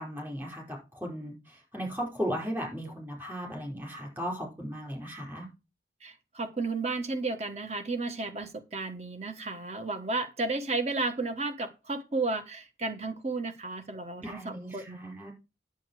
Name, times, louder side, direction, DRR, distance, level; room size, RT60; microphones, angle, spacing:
voice 1, 0.0-5.5 14.2-15.3, equal, 15° right, 5.0 m, -36 dB
voice 2, 6.0-15.0, right 3 dB, 35° right, 1.3 m, -33 dB
10.0 x 7.9 x 4.8 m
head